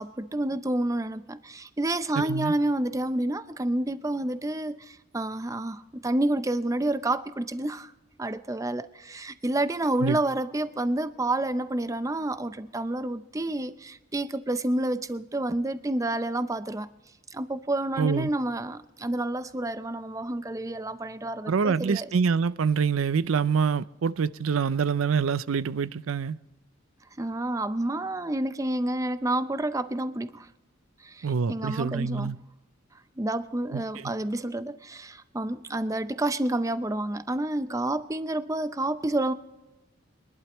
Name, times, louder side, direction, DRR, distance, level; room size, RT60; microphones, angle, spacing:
voice 1, 0.0-7.9 8.2-16.9 17.3-22.1 27.2-30.5 31.0-32.3 33.2-39.3, right 1 dB, 15° right, 0.5 m, -29 dB
voice 2, 2.2-2.5 10.0-10.2 18.0-18.3 21.5-26.4 31.2-32.4 33.7-34.1, right 6 dB, 80° right, 0.5 m, -26 dB
24.5 x 11.5 x 3.0 m
head